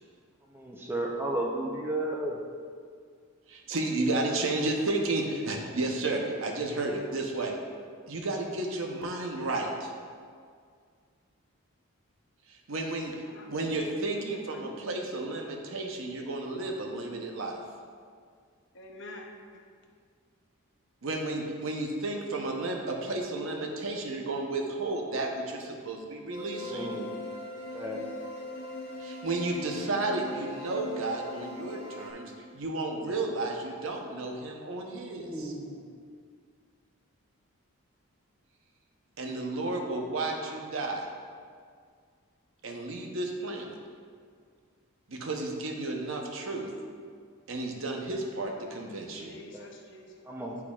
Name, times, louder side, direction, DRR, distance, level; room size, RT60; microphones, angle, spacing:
voice 1, 0.5-2.4 26.6-27.1 27.7-28.1 35.2-35.8 49.5-49.7 50.3-50.6, right 1 dB, 10° right, -1 dB, 0.6 m, -33 dB
voice 2, 3.5-7.5 8.1-9.9 12.5-13.1 13.5-17.6 21.0-27.0 29.0-35.5 39.2-41.1 42.6-43.7 45.1-46.7 47.5-49.3, right 2 dB, 65° right, 1 dB, 0.8 m, -32 dB
voice 3, 13.3-15.0 18.7-19.3 19.5-19.6 49.2-50.6, left 1 dB, 55° left, 1 dB, 0.8 m, -47 dB
sound 1, 26.3-32.1, left 2 dB, 85° left, 1.1 m, -40 dB
10.5 x 4.7 x 2.4 m, 2.1 s
head